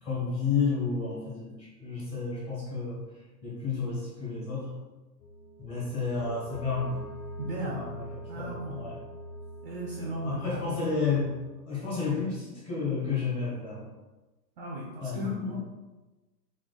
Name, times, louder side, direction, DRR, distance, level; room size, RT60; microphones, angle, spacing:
voice 1, 0.0-3.0 3.4-4.7 5.6-7.0 7.7-9.0 10.0-11.3 11.7-13.9 15.0-15.6, left 5 dB, 10° left, -7 dB, 1.2 m, -31 dB
sound 1, 5.2-11.5, equal, 80° left, 1.2 m, -43 dB
voice 2, 7.4-7.9 8.3-8.8 9.6-10.8 14.6-15.6, equal, 35° right, -2 dB, 0.7 m, -36 dB
4.9 x 2.7 x 3.9 m, 1.1 s
hypercardioid pair, 150°, 49 cm